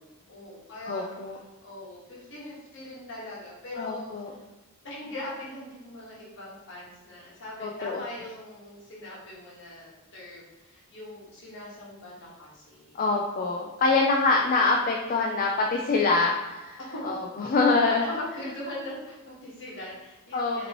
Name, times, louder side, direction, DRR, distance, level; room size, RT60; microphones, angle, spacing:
voice 1, 0.0-1.1 1.6-4.1 4.8-13.0 16.9-17.0 18.0-20.7, left 1 dB, 55° left, -6 dB, 1.5 m, -41 dB
voice 2, 0.9-1.4 3.7-4.3 7.6-8.0 13.0-18.1 20.3-20.7, left 3 dB, 40° left, 0 dB, 0.4 m, -25 dB
5.2 x 3.0 x 3.0 m, 1.1 s
head